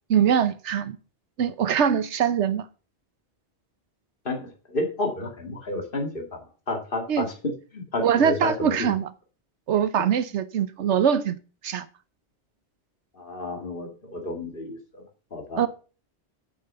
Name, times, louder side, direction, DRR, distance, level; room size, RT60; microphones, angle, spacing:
voice 1, 0.1-1.0 1.4-2.7 7.1-7.3 8.0-9.1 9.7-11.4 11.6-11.8 15.6-15.7, right 8 dB, 85° right, 1.1 m, -22 dB
voice 2, 4.2-6.4 6.7-8.9 13.2-15.0 15.3-15.7, left 2 dB, 50° left, 2.5 m, -31 dB
8.9 x 7.4 x 6.7 m
omnidirectional pair, 1.1 m